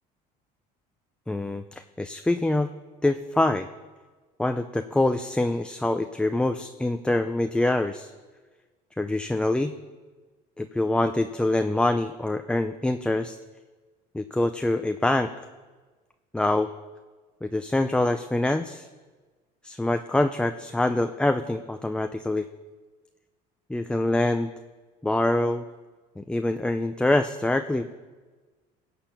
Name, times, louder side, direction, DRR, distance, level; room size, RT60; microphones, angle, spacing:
voice 1, 1.3-2.7 3.0-3.7 4.4-8.1 9.0-9.7 10.6-13.4 14.1-15.3 16.3-16.7 17.4-18.9 19.6-22.5 23.7-24.5 25.0-25.6 26.2-27.9, left 2 dB, 5° left, 7 dB, 0.5 m, -25 dB
16.5 x 7.0 x 5.8 m, 1.3 s
supercardioid pair, 105°, 18 cm